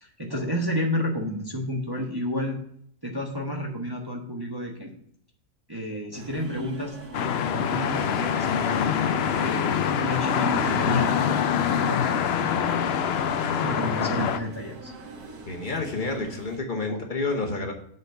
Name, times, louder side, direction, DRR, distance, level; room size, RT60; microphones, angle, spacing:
voice 1, 0.0-2.6 3.0-4.9 5.7-7.0 7.5-8.8 9.4-12.9 13.6-14.9 16.9-17.0, equal, 20° right, 0 dB, 0.9 m, -31 dB
sound 1, 6.1-16.6, right 2 dB, 90° right, 1.7 m, -41 dB
sound 2, 7.1-14.4, left 8 dB, 70° left, 0.6 m, -25 dB
voice 2, 15.5-17.7, left 3 dB, 35° left, 2 dB, 1.1 m, -29 dB
7.5 x 4.0 x 6.6 m, 0.64 s
omnidirectional pair, 1.6 m